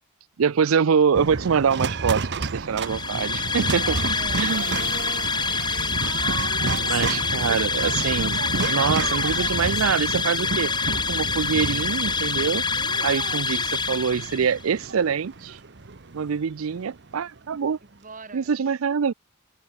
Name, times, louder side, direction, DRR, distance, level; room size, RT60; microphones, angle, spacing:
voice 1, 0.4-4.0 4.4-4.8 6.7-8.4 8.7-10.7 11.1-12.7 13.0-13.6 13.9-15.6 16.1-17.8 18.3-19.1, right 6 dB, 85° right, 0.5 m, -24 dB
sound 1, 1.1-17.4, right 3 dB, 55° right, 1.1 m, -31 dB
sound 2, 2.8-14.6, left 5 dB, 20° left, 1.1 m, -26 dB
voice 2, 3.8-7.5 13.0-13.7 17.8-18.5, right 4 dB, 40° right, 4.0 m, -42 dB
sound 3, 4.8-14.0, left 5 dB, 55° left, 5.6 m, -47 dB
head